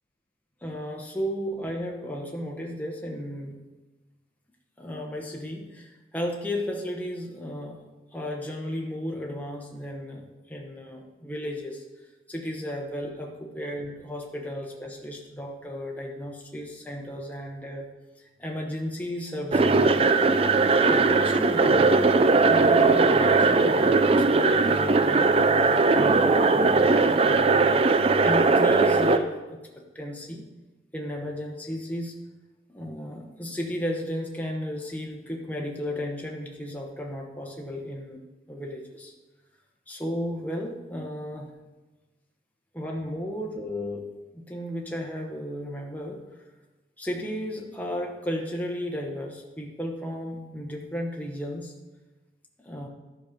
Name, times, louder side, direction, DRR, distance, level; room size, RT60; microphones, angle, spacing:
voice 1, 0.6-3.6 4.8-7.8 8.1-11.8 12.3-17.9 18.2-20.3 20.9-22.2 22.5-30.4 30.9-32.1 32.7-39.1 39.9-41.5 42.7-44.1 44.3-46.4 47.0-51.7 52.6-52.9, equal, 10° left, -1 dB, 1.0 m, -34 dB
sound 1, 19.5-29.2, right 3 dB, 30° right, 0.4 m, -20 dB
11.5 x 5.9 x 5.1 m, 1.2 s
head